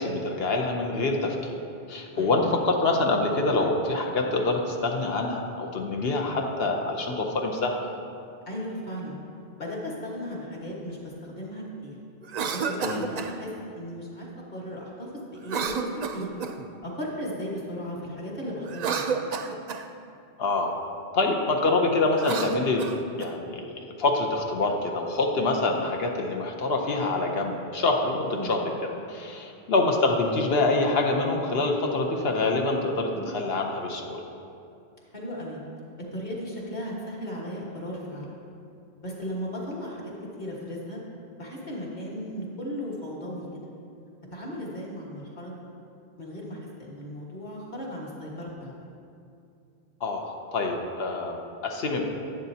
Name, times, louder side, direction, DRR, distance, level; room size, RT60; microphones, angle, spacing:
voice 1, 0.0-1.6 1.9-7.9 12.8-13.1 20.4-20.8 21.1-22.8 23.2-28.6 29.1-34.2 50.0-52.0, left 2 dB, 70° left, 2 dB, 1.0 m, -26 dB
voice 2, 8.4-9.2 9.6-12.0 12.5-16.3 16.8-19.1 28.3-28.6 33.1-33.3 35.1-35.6 36.1-38.3 39.0-40.1 40.4-41.0 41.4-43.4 44.3-45.5 46.2-48.7, equal, 45° left, -5 dB, 1.7 m, -36 dB
Cough, 12.2-13.3 15.4-16.7 18.6-19.9 22.1-23.3, right 5 dB, 55° right, 0.5 m, -30 dB
11.5 x 8.2 x 2.8 m, 2.5 s
omnidirectional pair, 1.1 m